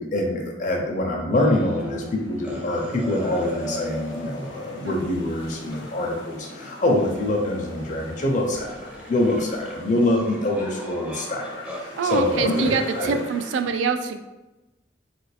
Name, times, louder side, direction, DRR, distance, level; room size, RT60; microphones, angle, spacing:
voice 1, 0.0-8.8 9.1-13.1, left 1 dB, 45° left, 0 dB, 0.5 m, -25 dB
sound 1, 1.3-2.1 2.4-6.7 7.0-8.2 8.5-11.8 12.1-13.2, equal, 5° right, 0.5 m, -38 dB
sound 2, 1.5-13.6, left 2 dB, 85° left, 0.6 m, -44 dB
voice 2, 4.8-5.2 12.0-14.2, right 5 dB, 85° right, 7 dB, 0.3 m, -25 dB
2.9 x 2.5 x 3.2 m, 1.0 s
head